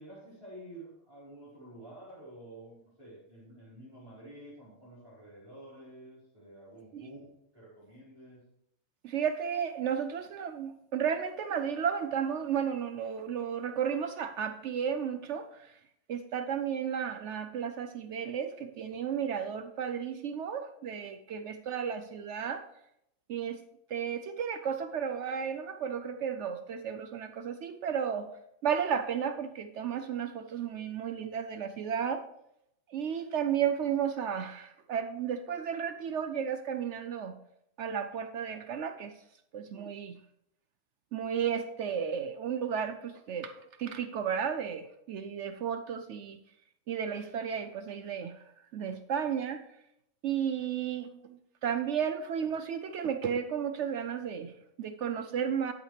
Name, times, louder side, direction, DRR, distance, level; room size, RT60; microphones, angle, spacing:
voice 1, 0.0-7.3 7.5-8.4, right 1 dB, 20° right, -10 dB, 4.6 m, -50 dB
voice 2, 9.0-15.8 16.1-22.6 23.3-23.6 23.9-28.3 28.6-32.2 32.9-37.3 37.8-39.2 39.5-40.2 41.1-46.4 46.9-48.4 48.7-49.6 50.2-55.7, right 8 dB, 65° right, 9 dB, 0.8 m, -33 dB
10.5 x 8.8 x 3.2 m, 0.78 s
omnidirectional pair, 1.4 m